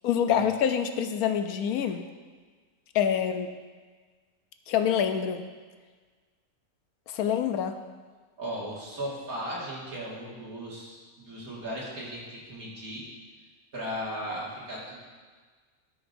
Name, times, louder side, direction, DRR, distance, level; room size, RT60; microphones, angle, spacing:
voice 1, 0.0-2.1 2.9-3.5 4.7-5.4 7.1-7.7, left 8 dB, 85° left, 7 dB, 1.1 m, -26 dB
voice 2, 8.4-13.0 13.7-15.0, equal, 75° right, -5 dB, 2.4 m, -36 dB
13.5 x 6.1 x 2.6 m, 1.5 s
omnidirectional pair, 1.5 m